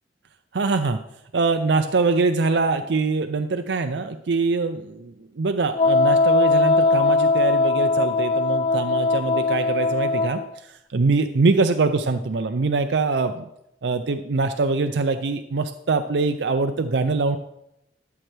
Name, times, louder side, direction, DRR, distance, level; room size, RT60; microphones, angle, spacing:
voice 1, 0.5-1.0 1.3-13.5 13.8-17.4, right 3 dB, 70° right, 8 dB, 0.5 m, -23 dB
Wind instrument woodwind instrument, 5.7-10.5, left 3 dB, 35° left, 0.5 m, -20 dB
13.0 x 7.5 x 3.4 m, 0.82 s
head